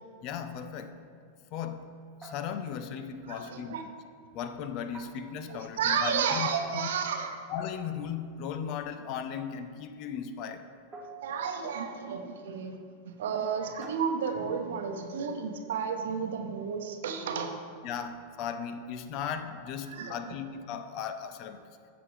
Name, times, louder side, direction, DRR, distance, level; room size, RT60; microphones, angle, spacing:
voice 1, 0.2-1.0 1.5-1.9 2.2-3.8 4.3-6.5 6.7-6.9 7.5-10.7 17.8-21.6, left 7 dB, 40° left, 10 dB, 0.6 m, -37 dB
sound 1, 2.2-3.0 4.9-5.8 7.3-7.9 9.3-9.7 10.9-11.9 13.8-14.6 17.6-17.9 19.5-20.0, right 3 dB, 15° right, 0.9 m, -51 dB
voice 2, 3.3-3.9 5.5-7.3 11.2-12.8 13.1-17.6 19.9-20.3, right 6 dB, 60° right, 5 dB, 0.9 m, -32 dB
14.5 x 6.0 x 3.2 m, 2.1 s
figure-of-eight pair, 90°, 0 cm